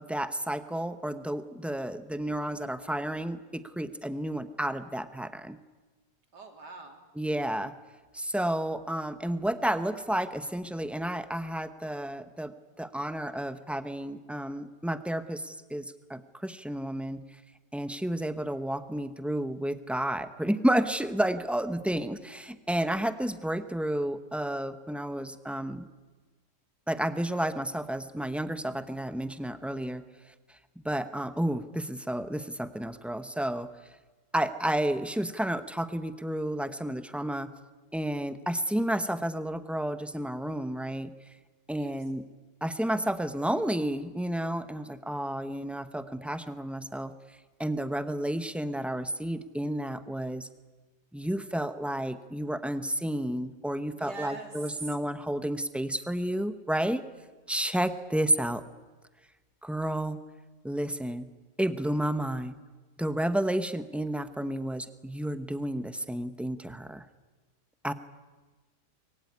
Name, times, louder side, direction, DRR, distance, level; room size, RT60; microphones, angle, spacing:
voice 1, 0.0-5.6 7.2-7.7 8.1-17.2 17.7-25.9 26.9-30.0 30.8-33.7 34.3-37.5 37.9-41.1 41.7-42.2 42.6-47.1 47.6-50.5 51.1-57.0 57.5-58.6 59.6-60.2 60.6-61.3 61.6-62.6 63.0-67.0 67.8-67.9, right 1 dB, ahead, 11 dB, 0.6 m, -31 dB
voice 2, 6.3-7.0 41.8-42.0 54.0-55.0, right 3 dB, 75° right, 4 dB, 3.8 m, -42 dB
25.0 x 22.0 x 9.7 m, 1.3 s
omnidirectional pair, 1.8 m